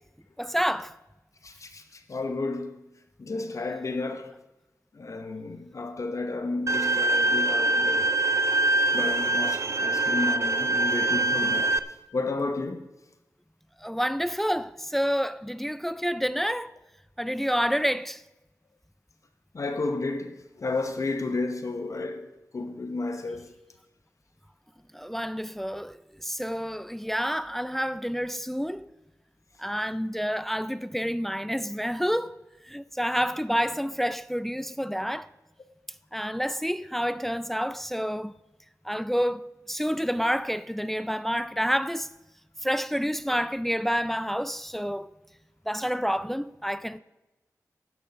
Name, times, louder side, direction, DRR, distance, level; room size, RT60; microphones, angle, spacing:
voice 1, 0.4-0.9 13.8-16.7 17.2-18.2 24.9-28.9 29.6-32.4 32.7-35.3 36.1-38.3 38.8-42.1 42.6-45.1 45.7-47.0, equal, 5° left, 0.4 m, -28 dB
voice 2, 1.4-2.8 3.2-4.3 4.9-8.1 8.9-11.8 12.1-12.9 19.5-22.3 22.5-23.5, left 3 dB, 55° left, 0.9 m, -32 dB
Bowed string instrument, 6.7-11.8, right 2 dB, 50° right, 0.6 m, -24 dB
12.5 x 9.5 x 5.4 m
cardioid pair, 50°, 6 cm